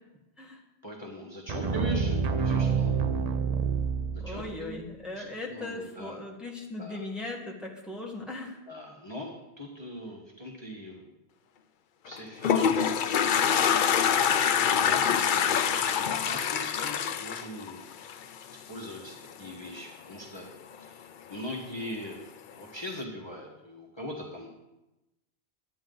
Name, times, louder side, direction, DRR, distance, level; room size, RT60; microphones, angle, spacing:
voice 1, 0.8-3.1 4.1-4.8 5.1-6.2 6.8-7.0 8.7-9.3 9.6-11.1 12.0-12.6 12.9-13.8 14.6-17.8 18.7-20.5 20.8-24.6, equal, 25° left, -1 dB, 1.3 m, -41 dB
sound 1, 1.5-4.6, right 5 dB, 45° right, 0.6 m, -27 dB
voice 2, 4.2-8.6, left 2 dB, ahead, -1 dB, 1.5 m, -38 dB
Toilet flush, 12.1-18.4, left 8 dB, 60° left, 0.6 m, -25 dB
11.5 x 9.3 x 3.9 m, 0.97 s
omnidirectional pair, 1.1 m